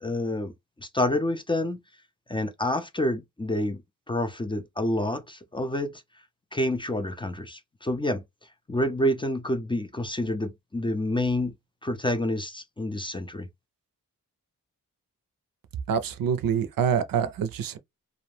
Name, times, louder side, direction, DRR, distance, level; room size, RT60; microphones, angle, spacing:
voice 1, 0.0-0.5 0.8-1.8 2.3-3.8 4.1-5.9 6.5-8.2 8.7-11.5 11.8-13.5, left 1 dB, 15° left, 0.4 m, -28 dB
voice 2, 15.9-17.8, right 7 dB, 80° right, 0.5 m, -26 dB
2.5 x 2.0 x 3.1 m
wide cardioid pair, 85°, 34 cm